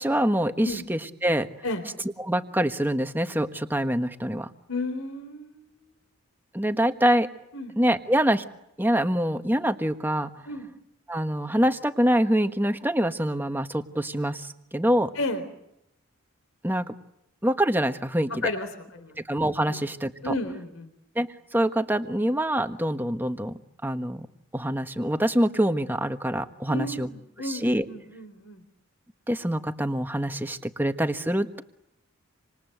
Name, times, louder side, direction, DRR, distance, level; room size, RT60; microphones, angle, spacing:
voice 1, 0.0-1.5 2.2-4.5 6.5-7.3 7.8-8.4 8.8-10.3 11.1-15.1 16.6-16.9 17.4-18.4 19.2-20.3 21.1-24.3 24.5-27.1 27.5-27.8 29.3-31.6, right 1 dB, 10° right, 9 dB, 1.3 m, -25 dB
voice 2, 4.7-5.7 7.5-7.7 10.5-10.7 15.2-15.4 18.4-19.2 19.7-19.8 20.2-20.9 26.7-28.6, left 2 dB, 75° left, 10 dB, 3.9 m, -32 dB
27.5 x 27.0 x 8.0 m, 0.81 s
head